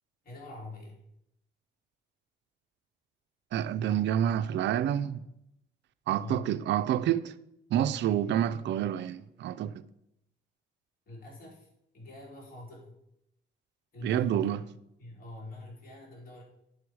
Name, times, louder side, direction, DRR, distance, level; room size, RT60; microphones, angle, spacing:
voice 1, 0.2-0.9 6.2-6.5 11.1-11.7 11.9-12.9 13.9-14.4 15.0-16.4, left 2 dB, 45° left, 3.4 m, -45 dB
voice 2, 3.5-5.2 6.1-7.3 7.7-9.8 14.0-14.6, right 10 dB, 65° right, 0.4 m, -28 dB
10.0 x 4.8 x 4.6 m
cardioid pair, 90°, 20 cm